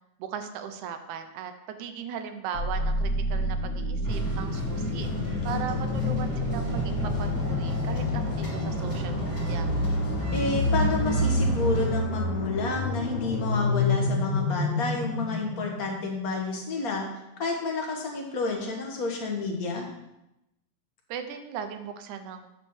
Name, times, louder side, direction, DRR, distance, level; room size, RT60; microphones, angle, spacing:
voice 1, 0.2-5.1 5.4-9.7 21.1-22.5, right 8 dB, 85° right, 8 dB, 2.1 m, -38 dB
sound 1, 2.5-16.3, left 1 dB, 50° left, 1.4 m, -28 dB
sound 2, 4.0-11.9, equal, 5° left, 2.4 m, -33 dB
voice 2, 10.3-17.1 17.4-19.8, left 3 dB, 85° left, 1 dB, 0.8 m, -30 dB
9.0 x 4.4 x 7.0 m, 0.89 s
omnidirectional pair, 3.5 m